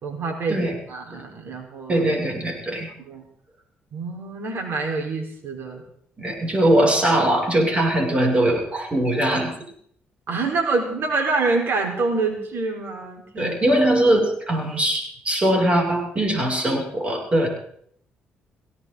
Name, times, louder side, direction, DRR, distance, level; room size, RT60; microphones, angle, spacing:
voice 1, 0.0-0.6 0.9-2.0 3.0-3.2 3.9-5.8 10.3-13.5, right 3 dB, 65° right, 2 dB, 4.6 m, -26 dB
voice 2, 1.9-2.9 6.2-9.5 13.4-17.5, right 1 dB, 30° right, 0 dB, 7.0 m, -21 dB
18.0 x 17.5 x 4.0 m, 0.66 s
cardioid pair, 75°, 4 cm